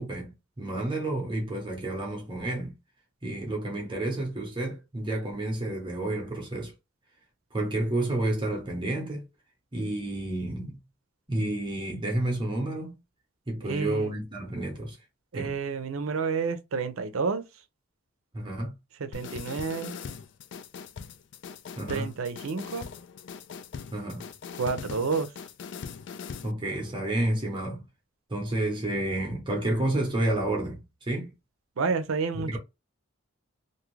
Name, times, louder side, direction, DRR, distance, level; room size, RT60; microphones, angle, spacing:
voice 1, 0.0-2.7 3.2-6.7 7.5-9.3 9.7-10.7 11.3-13.0 13.5-15.0 15.3-15.5 18.3-18.7 21.8-22.1 23.9-24.3 26.4-27.8 28.3-31.3 32.3-32.6, right 1 dB, 25° right, 0.8 m, -30 dB
voice 2, 13.6-14.1 15.3-17.4 19.0-19.9 21.9-22.9 24.6-25.4 31.8-32.6, right 5 dB, 85° right, 0.5 m, -30 dB
sound 1, 19.1-26.5, left 6 dB, 60° left, 0.3 m, -41 dB
2.6 x 2.4 x 3.1 m
head